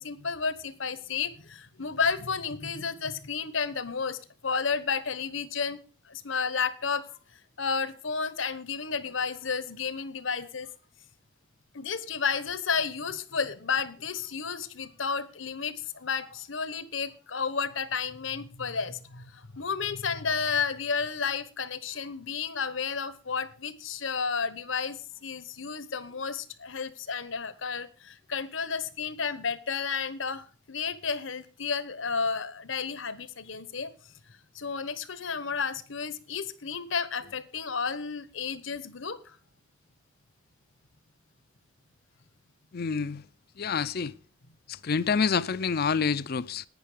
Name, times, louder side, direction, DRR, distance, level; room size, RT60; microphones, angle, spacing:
voice 1, 0.0-7.1 7.6-10.7 11.7-33.9 34.5-39.4, left 5 dB, 75° left, 1.1 m, -32 dB
voice 2, 42.7-43.2 43.6-44.1 44.7-46.7, left 5 dB, 50° left, 0.5 m, -27 dB
11.0 x 9.6 x 5.0 m
head